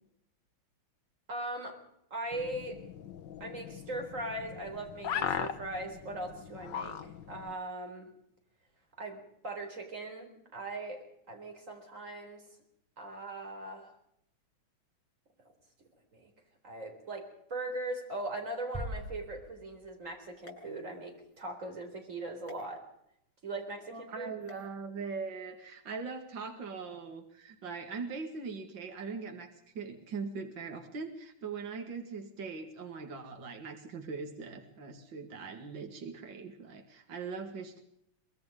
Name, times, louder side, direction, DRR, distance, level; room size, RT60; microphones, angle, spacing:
voice 1, 1.3-1.8 2.1-2.8 3.4-7.0 7.3-8.1 9.0-12.4 13.0-13.9 16.1-16.3 16.6-22.8 23.4-24.3, right 2 dB, 35° right, 3 dB, 4.3 m, -40 dB
sound 1, 2.3-7.5, left 8 dB, 60° left, 1.6 m, -39 dB
sound 2, 18.7-20.3, equal, 10° right, 3.3 m, -42 dB
sound 3, 20.4-21.4 22.5-22.6 24.4-24.7, left 5 dB, 85° left, 4.9 m, -52 dB
voice 2, 23.9-37.8, right 5 dB, 65° right, 5 dB, 2.8 m, -41 dB
23.5 x 21.5 x 5.2 m, 0.73 s
omnidirectional pair, 2.3 m